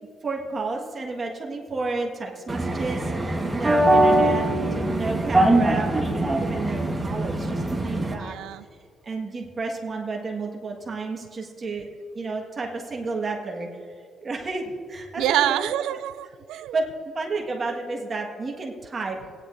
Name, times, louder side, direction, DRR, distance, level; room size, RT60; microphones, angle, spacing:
voice 1, 0.2-5.9 6.4-8.4 9.0-11.9 12.1-13.7 14.2-15.6 16.7-16.8 17.1-19.2, right 3 dB, 40° right, 0 dB, 1.6 m, -31 dB
sound 1, 2.5-8.1, right 1 dB, 15° right, 1.3 m, -22 dB
voice 2, 8.2-8.7 15.2-16.8, right 12 dB, 90° right, 16 dB, 0.3 m, -26 dB
16.5 x 10.5 x 2.6 m, 2.1 s
cardioid pair, 90°, 0 cm